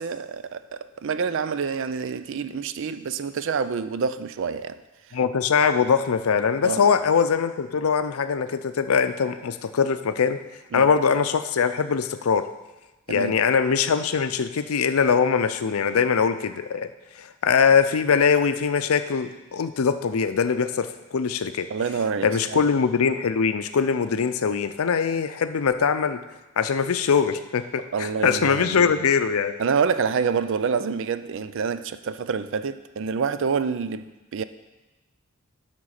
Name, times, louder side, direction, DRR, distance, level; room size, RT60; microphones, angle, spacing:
voice 1, 0.0-4.8 6.6-6.9 10.7-10.9 13.1-13.3 21.7-22.7 27.9-28.9 29.6-34.0 34.3-34.4, right 6 dB, 60° right, 13 dB, 0.4 m, -27 dB
voice 2, 5.1-10.4 10.7-12.5 13.1-16.9 17.2-21.7 22.2-26.2 26.6-29.5, left 6 dB, 80° left, 10 dB, 0.5 m, -22 dB
11.0 x 3.8 x 6.5 m, 1.1 s
head